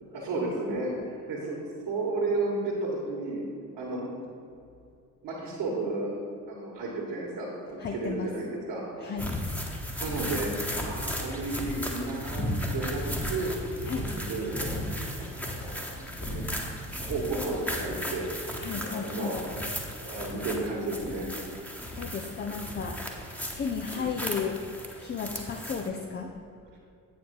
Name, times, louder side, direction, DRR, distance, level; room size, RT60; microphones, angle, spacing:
voice 1, 0.1-1.6 1.9-3.4 3.7-4.1 5.2-6.1 6.5-8.8 10.0-10.5 10.8-12.4 12.7-13.0 13.3-13.5 14.0-14.7 15.1-16.5 17.0-18.3 18.7-19.4 20.0-21.3 23.9-24.1, right 2 dB, 60° right, -5 dB, 1.7 m, -33 dB
voice 2, 7.8-8.3 9.0-9.3 13.8-14.1 18.6-19.4 22.0-23.0 23.3-24.6 25.0-26.3, left 6 dB, 20° left, 3 dB, 0.6 m, -34 dB
sound 1, 9.2-25.9, equal, 5° left, 1.3 m, -35 dB
8.4 x 5.0 x 5.3 m, 2.5 s
figure-of-eight pair, 40°, 48 cm